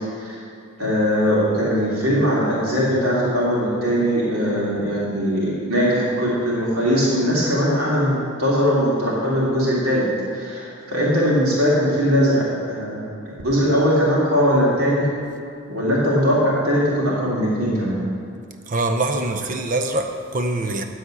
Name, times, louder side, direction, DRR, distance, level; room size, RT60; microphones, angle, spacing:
voice 1, 0.8-10.1 10.3-15.1 15.7-18.0, equal, 90° right, 2.8 m, -20 dB
voice 2, 18.7-20.9, right 2 dB, 40° right, 0.6 m, -24 dB
12.0 x 4.3 x 7.6 m
head